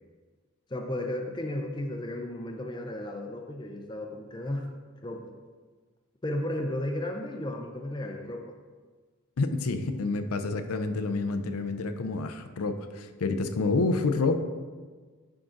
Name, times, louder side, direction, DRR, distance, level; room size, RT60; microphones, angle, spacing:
voice 1, 0.7-4.7 5.0-5.3 6.2-8.5, left 1 dB, 20° left, 3 dB, 0.5 m, -34 dB
voice 2, 9.4-14.4, left 3 dB, 85° left, 8 dB, 0.5 m, -28 dB
10.5 x 3.8 x 3.9 m, 1.4 s
head